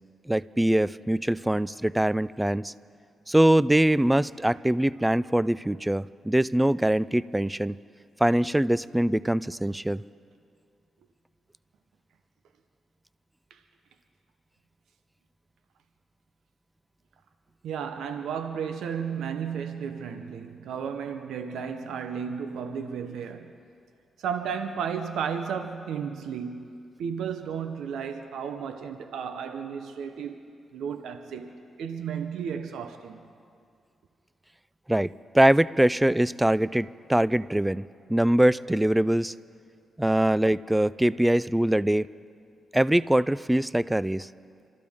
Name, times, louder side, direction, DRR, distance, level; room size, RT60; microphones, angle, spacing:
voice 1, 0.3-2.7 3.3-7.8 8.2-10.0 34.9-39.3 40.0-42.1 42.7-44.3, right 1 dB, 10° right, 0.3 m, -23 dB
voice 2, 17.6-23.6 24.2-30.4 30.7-33.2, right 7 dB, 85° right, 0.8 m, -33 dB
27.0 x 13.5 x 3.6 m
cardioid pair, 70°, 0 cm